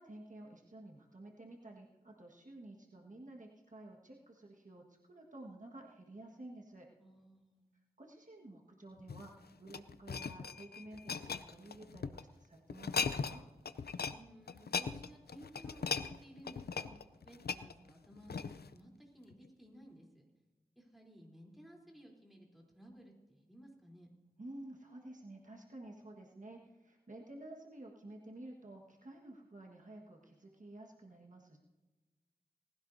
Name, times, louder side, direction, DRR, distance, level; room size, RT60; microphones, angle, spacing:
voice 1, 0.0-6.9 8.0-13.4 24.4-31.6, right 1 dB, 55° right, -1 dB, 1.6 m, -52 dB
voice 2, 7.0-7.7 14.1-20.2 20.8-24.1, equal, ahead, -1 dB, 3.5 m, -57 dB
sound 1, 9.0-12.2 12.7-13.4 13.6-14.2 14.5-18.7 19.3-19.5, left 5 dB, 80° left, 0.5 m, -39 dB
19.0 x 16.0 x 2.7 m, 1.2 s
wide cardioid pair, 65°, 16 cm